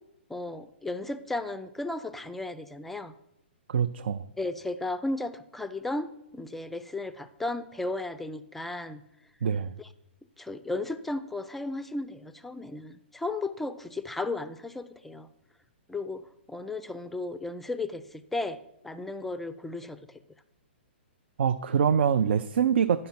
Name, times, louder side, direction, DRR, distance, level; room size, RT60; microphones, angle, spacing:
voice 1, 0.3-3.1 4.4-9.0 9.8-9.9 10.4-15.3 15.9-18.6 18.8-20.2, left 2 dB, 5° left, 12 dB, 0.3 m, -35 dB
voice 2, 3.7-4.2 9.4-9.7 21.4-23.1, right 7 dB, 75° right, 10 dB, 0.4 m, -25 dB
10.5 x 5.4 x 5.8 m, 0.82 s
hypercardioid pair, 150°, 6 cm